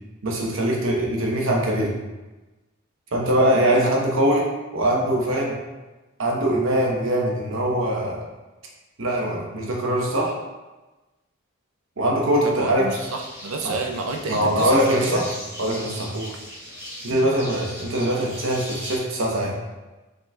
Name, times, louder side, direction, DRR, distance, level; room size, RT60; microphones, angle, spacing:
voice 1, 0.2-2.0 3.1-5.6 6.2-8.2 9.0-10.4 12.0-12.9 13.6-13.7 14.3-15.3 15.6-16.1 17.0-19.6, right 1 dB, 70° right, -1 dB, 0.9 m, -22 dB
voice 2, 12.4-15.2 16.1-16.4, right 3 dB, 85° right, 3 dB, 0.5 m, -30 dB
sound 1, 12.9-19.0, equal, 10° right, 1.2 m, -38 dB
5.1 x 3.8 x 2.3 m, 1.1 s
head